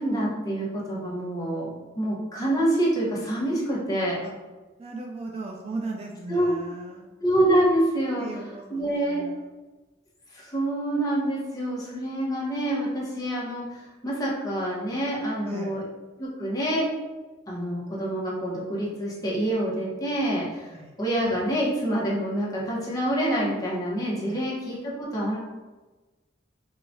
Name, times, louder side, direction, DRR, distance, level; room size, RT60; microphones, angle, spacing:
voice 1, 0.0-4.2 6.3-6.5 7.2-8.3 8.7-9.3 10.3-15.8 16.2-16.9 17.5-25.4, right 1 dB, 20° left, -5 dB, 0.9 m, -26 dB
voice 2, 4.8-7.1 8.2-9.5 15.4-15.8 20.7-21.0 24.3-24.5, right 3 dB, 35° right, 1 dB, 0.3 m, -38 dB
4.7 x 2.3 x 2.6 m, 1.2 s
head